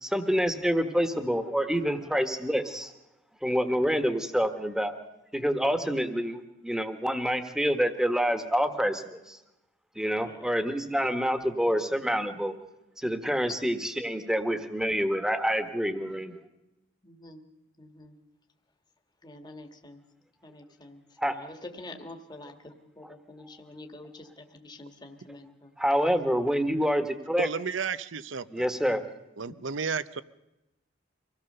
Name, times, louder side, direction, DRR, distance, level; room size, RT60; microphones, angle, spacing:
voice 1, 0.0-2.9 3.4-4.9 5.3-9.4 10.0-12.5 13.0-16.4 21.2-21.3 25.8-27.5 28.5-29.0, equal, 5° right, 8 dB, 1.4 m, -27 dB
voice 2, 10.2-10.6 17.0-17.4 17.8-18.2 19.2-20.0 20.4-26.1 29.5-29.6, left 2 dB, 20° left, 5 dB, 1.6 m, -47 dB
voice 3, 27.4-28.7 29.4-30.2, right 5 dB, 70° right, 16 dB, 0.8 m, -32 dB
25.0 x 17.0 x 6.7 m, 0.95 s
head